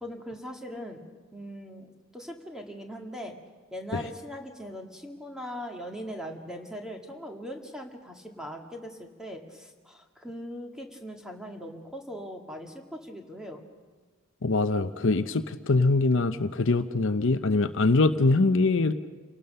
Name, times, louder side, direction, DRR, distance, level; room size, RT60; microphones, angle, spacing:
voice 1, 0.0-3.4 3.7-13.6, equal, 5° right, 2 dB, 1.9 m, -40 dB
voice 2, 14.4-18.9, left 3 dB, 60° left, 10 dB, 0.8 m, -23 dB
28.5 x 18.0 x 6.8 m, 1.4 s
head